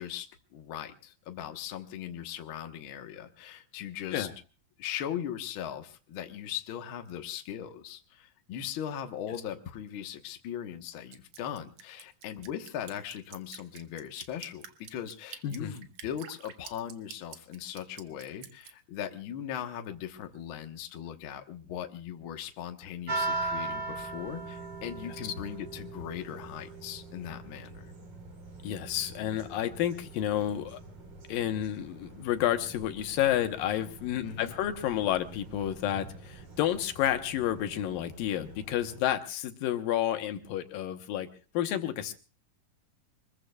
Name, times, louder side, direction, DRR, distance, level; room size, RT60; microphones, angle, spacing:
voice 1, 0.0-4.3 4.8-27.9 34.2-34.5, left 10 dB, 55° left, 6 dB, 1.4 m, -39 dB
Drip, 11.1-18.7, right 9 dB, 65° right, 1.6 m, -48 dB
voice 2, 15.4-15.8 25.2-25.3 28.6-30.8 31.3-41.3 41.5-42.1, left 11 dB, 85° left, 7 dB, 2.9 m, -30 dB
sound 1, 23.1-39.0, right 3 dB, 45° right, 4.4 m, -41 dB
25.0 x 21.0 x 2.4 m, 0.34 s
omnidirectional pair, 3.9 m